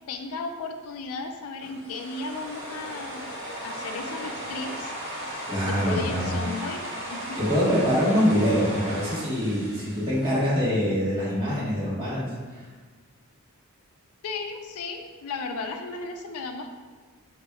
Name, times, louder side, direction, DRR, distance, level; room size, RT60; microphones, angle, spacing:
voice 1, 0.1-4.9 5.6-6.8 7.1-7.4 14.2-16.7, left 3 dB, 75° left, 5 dB, 0.4 m, -35 dB
sound 1, 1.6-10.8, equal, 55° right, 0.9 m, -36 dB
voice 2, 5.5-6.4 7.4-12.3, equal, 20° right, -10 dB, 1.3 m, -24 dB
4.9 x 2.5 x 2.3 m, 1.4 s
head